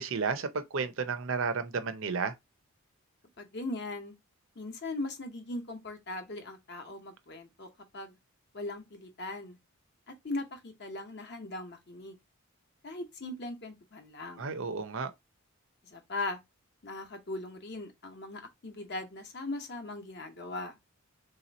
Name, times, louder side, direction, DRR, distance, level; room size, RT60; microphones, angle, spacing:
voice 1, 0.0-2.3 14.4-15.1, right 5 dB, 60° right, 0.6 m, -32 dB
voice 2, 3.4-4.1 4.6-7.7 7.9-8.1 8.5-9.6 10.1-12.2 12.8-14.5 15.8-16.4 16.8-20.7, left 2 dB, 50° left, 0.9 m, -39 dB
3.3 x 2.9 x 4.0 m
head